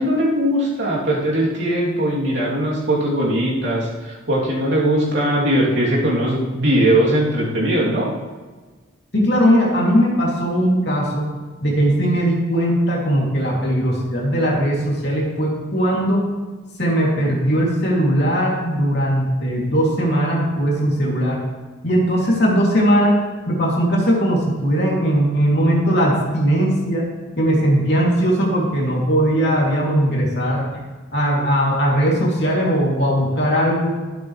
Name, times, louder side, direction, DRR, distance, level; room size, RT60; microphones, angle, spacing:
voice 1, 0.0-8.1, right 1 dB, 60° right, -5 dB, 3.2 m, -20 dB
voice 2, 9.1-11.3 11.6-16.3 16.8-21.4 21.8-23.1 23.5-27.1 27.4-30.7 31.1-34.0, equal, 55° left, -4 dB, 3.0 m, -19 dB
12.5 x 12.0 x 3.4 m, 1.3 s
head